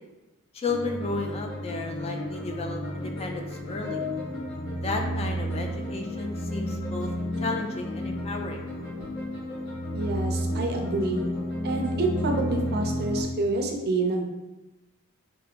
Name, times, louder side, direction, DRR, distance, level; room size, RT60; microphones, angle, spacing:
voice 1, 0.5-4.0 4.8-7.1 7.4-8.7, left 3 dB, 25° left, 3 dB, 0.3 m, -33 dB
sound 1, 0.7-13.2, equal, 60° left, 1.2 m, -32 dB
voice 2, 9.9-11.3 11.6-14.2, right 2 dB, 45° right, 3 dB, 0.5 m, -28 dB
3.3 x 2.5 x 3.7 m, 1.1 s
head